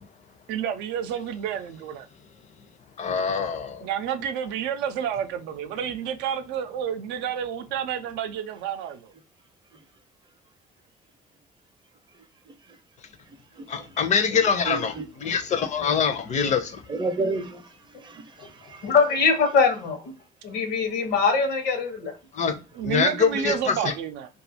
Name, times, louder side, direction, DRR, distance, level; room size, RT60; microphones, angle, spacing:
voice 1, 0.5-2.1 3.8-9.1 22.7-24.3, right 9 dB, 90° right, 0.4 m, -30 dB
voice 2, 3.0-3.9 13.7-16.8 22.3-22.6 22.8-23.9, left 6 dB, 45° left, 0.5 m, -24 dB
voice 3, 12.5-12.8 13.5-14.0 14.7-15.3 15.6-16.0 16.9-18.9, right 3 dB, 30° right, 0.5 m, -33 dB
voice 4, 18.8-20.1 20.4-22.1, left 5 dB, 80° left, 0.8 m, -22 dB
2.4 x 2.3 x 2.6 m
cardioid pair, 110°, 17 cm